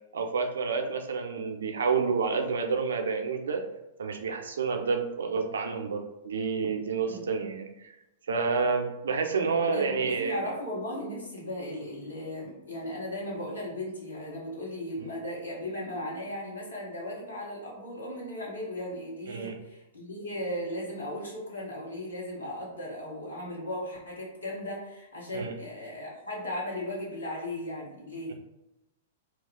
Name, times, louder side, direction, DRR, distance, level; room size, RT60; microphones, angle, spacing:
voice 1, 0.1-3.6 4.0-8.0 8.3-10.5 15.0-15.1 19.3-19.6 25.3-25.5, right 5 dB, 65° right, 4 dB, 0.4 m, -29 dB
voice 2, 9.7-28.3, left 1 dB, 85° left, -6 dB, 1.0 m, -36 dB
2.3 x 2.3 x 3.8 m, 0.94 s
figure-of-eight pair, 100°, 0 cm